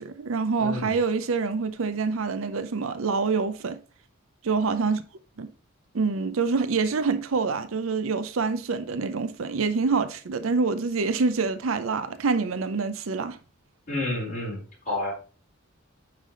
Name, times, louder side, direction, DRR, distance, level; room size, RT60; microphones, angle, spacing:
voice 1, 0.0-3.8 4.4-5.0 5.4-5.5 5.9-13.4, right 4 dB, 75° right, 0.6 m, -26 dB
voice 2, 0.6-0.9 13.9-15.1, left 2 dB, 40° left, 3.7 m, -30 dB
9.2 x 3.4 x 3.8 m
head